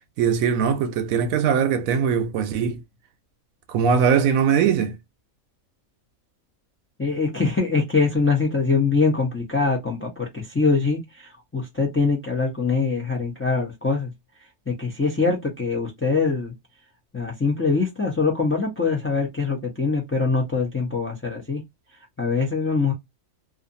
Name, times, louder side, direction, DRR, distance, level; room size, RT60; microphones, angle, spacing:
voice 1, 0.2-2.8 3.7-5.0, right 7 dB, 75° right, 1.0 m, -21 dB
voice 2, 7.0-14.1 14.7-16.5 17.1-21.6 22.2-22.9, left 4 dB, 15° left, 0.5 m, -23 dB
2.5 x 2.5 x 2.5 m
omnidirectional pair, 1.5 m